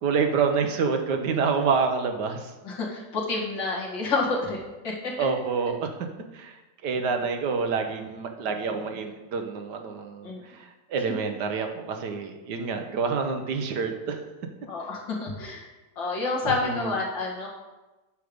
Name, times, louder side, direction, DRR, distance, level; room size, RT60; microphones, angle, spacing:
voice 1, 0.0-2.5 5.2-6.0 6.3-14.2 16.4-17.0, right 5 dB, 65° right, 5 dB, 1.5 m, -27 dB
voice 2, 2.6-4.6 4.8-5.1 10.2-10.4 14.7-15.7 16.0-17.5, left 3 dB, 80° left, -4 dB, 2.7 m, -29 dB
8.1 x 6.6 x 5.2 m, 1.1 s
omnidirectional pair, 2.0 m